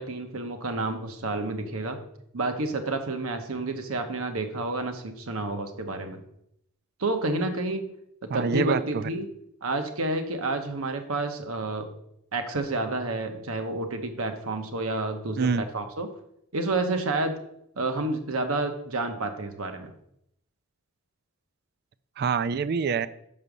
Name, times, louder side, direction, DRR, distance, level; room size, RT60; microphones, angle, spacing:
voice 1, 0.0-2.0 2.3-6.2 7.0-7.9 8.3-9.3 9.6-11.9 12.3-16.1 16.5-17.4 17.8-19.9, right 2 dB, 75° right, 6 dB, 1.0 m, -29 dB
voice 2, 8.3-9.1 15.4-15.6 22.2-23.1, right 6 dB, 50° right, 15 dB, 0.4 m, -26 dB
6.1 x 5.5 x 6.7 m, 0.75 s
head